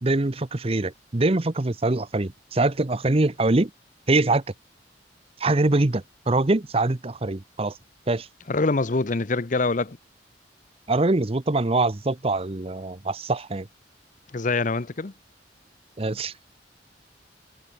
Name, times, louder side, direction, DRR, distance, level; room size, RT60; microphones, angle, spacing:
voice 1, 0.0-3.7 4.1-4.4 5.4-7.8 8.1-8.3 10.9-13.7 16.0-16.3, right 2 dB, 35° right, 0.8 m, -23 dB
voice 2, 8.5-10.0 14.3-15.1, left 3 dB, 45° left, 0.8 m, -24 dB
head